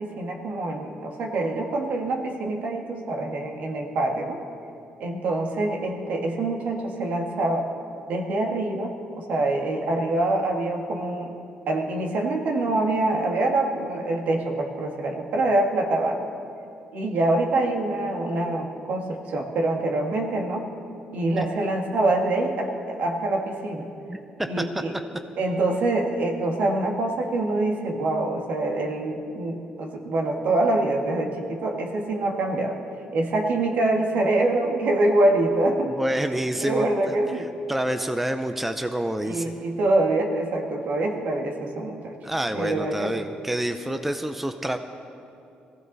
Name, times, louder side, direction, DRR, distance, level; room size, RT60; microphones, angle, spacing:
voice 1, 0.0-4.4 5.0-7.7 8.1-11.4 11.7-16.2 16.9-20.6 21.1-23.9 24.5-24.9 25.4-32.8 33.1-35.9 36.5-37.5 39.2-42.1 42.5-43.2, right 2 dB, 65° right, 2 dB, 2.0 m, -25 dB
voice 2, 35.9-37.4 37.7-39.5 42.2-44.8, right 1 dB, 5° right, 7 dB, 0.6 m, -28 dB
21.5 x 16.0 x 4.1 m, 2.7 s
cardioid pair, 135°, 3 cm